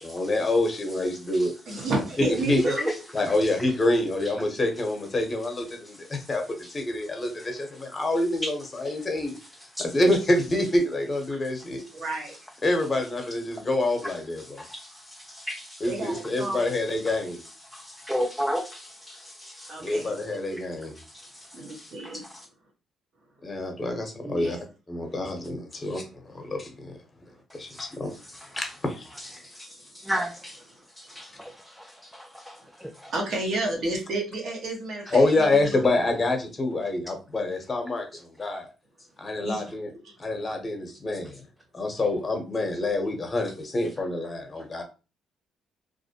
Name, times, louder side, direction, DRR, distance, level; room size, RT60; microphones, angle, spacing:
voice 1, 0.0-1.5 2.2-2.6 3.1-6.4 6.7-9.4 9.8-11.8 12.6-14.6 15.8-17.4 19.8-20.9 23.4-24.6 24.9-26.9 27.5-28.1 28.5-29.1 35.1-38.7 39.2-39.9 40.2-41.4 41.7-44.8, left 2 dB, 25° left, 0.8 m, -26 dB
voice 2, 1.7-2.9 11.9-12.4 15.9-16.6 19.7-20.1 21.5-22.2 24.2-24.6 33.1-35.8 39.4-39.7, right 2 dB, 65° right, 0.9 m, -31 dB
voice 3, 14.6-14.9 15.3-15.8 17.7-19.7 21.8-21.9 27.7-27.9 29.6-29.7 30.0-30.6 31.2-31.5 31.8-31.9 32.1-32.6 32.8-33.1, equal, ahead, 0.3 m, -33 dB
2.4 x 2.0 x 2.7 m
cardioid pair, 90°, 0 cm